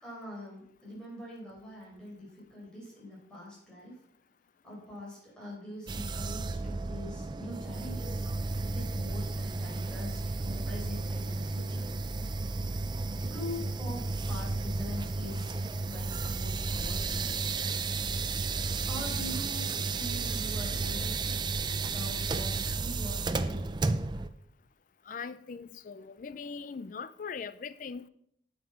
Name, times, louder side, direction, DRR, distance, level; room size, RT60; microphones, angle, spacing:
voice 1, 0.0-4.0 4.6-8.2 8.7-12.2 13.3-17.6 18.6-23.6, left 1 dB, 5° left, 4.8 m, -44 dB
sound 1, 5.9-24.3, right 3 dB, 25° right, 0.5 m, -33 dB
voice 2, 25.1-28.0, left 5 dB, 45° left, 0.4 m, -40 dB
9.4 x 7.5 x 5.8 m
head